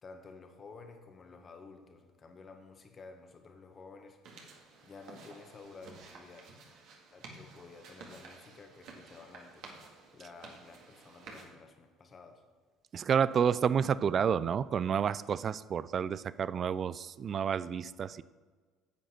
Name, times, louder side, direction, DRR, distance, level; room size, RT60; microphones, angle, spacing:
voice 1, 0.0-4.2 4.5-6.5 7.1-9.8 10.1-12.4, left 4 dB, 35° left, 6 dB, 1.4 m, -52 dB
sound 1, 4.2-11.4, right 4 dB, 60° right, 1.9 m, -52 dB
voice 2, 12.9-18.2, right 7 dB, 45° right, 17 dB, 0.4 m, -30 dB
10.5 x 8.0 x 4.4 m, 1.5 s
hypercardioid pair, 65°, 0 cm